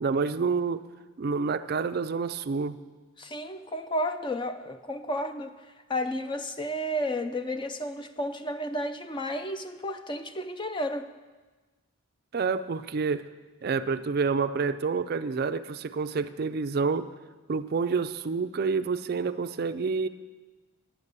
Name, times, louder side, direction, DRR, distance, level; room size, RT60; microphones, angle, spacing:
voice 1, 0.0-0.8 1.2-2.8 12.3-13.3 13.6-17.1 17.5-20.1, right 5 dB, 45° right, 11 dB, 0.4 m, -28 dB
voice 2, 3.2-11.1, equal, 20° left, 8 dB, 0.5 m, -32 dB
11.0 x 9.1 x 6.7 m, 1.3 s
head